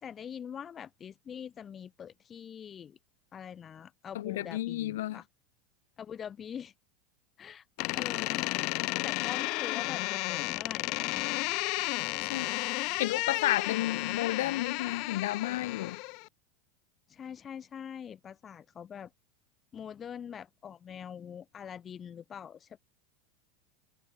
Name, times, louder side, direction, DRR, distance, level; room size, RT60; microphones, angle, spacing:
voice 1, 0.0-3.0 3.3-5.3 6.0-6.7 7.4-7.6 7.9-8.5 9.0-11.3 17.1-19.1 19.7-22.8, left 8 dB, 20° left, 4.4 m, -44 dB
voice 2, 4.1-5.2 12.2-12.5 13.0-16.0, left 15 dB, 80° left, 0.8 m, -32 dB
Door, 7.8-16.3, left 28 dB, 45° left, 1.2 m, -33 dB
supercardioid pair, 160°, 0 cm